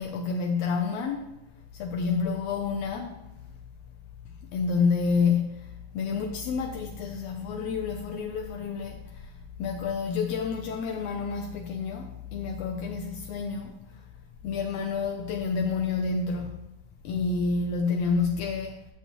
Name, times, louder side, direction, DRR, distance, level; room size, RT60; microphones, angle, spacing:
voice 1, 0.0-1.4 1.7-3.2 4.5-14.0 14.4-16.6 17.0-18.9, left 5 dB, 80° left, 1.5 m, -29 dB
8.4 x 7.2 x 2.9 m
omnidirectional pair, 3.5 m